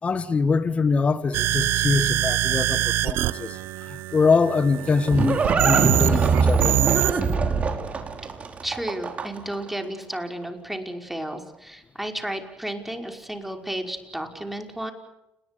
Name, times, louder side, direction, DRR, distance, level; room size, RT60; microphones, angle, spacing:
voice 1, 0.0-6.8, left 4 dB, 30° left, 1.8 m, -24 dB
sound 1, 1.3-7.3, right 15 dB, 70° right, 0.8 m, -25 dB
Livestock farm animals working animals, 4.5-9.5, right 5 dB, 35° right, 5.1 m, -23 dB
voice 2, 8.6-14.9, right 1 dB, 5° right, 5.4 m, -32 dB
30.0 x 20.5 x 7.0 m
supercardioid pair, 75°, 4 cm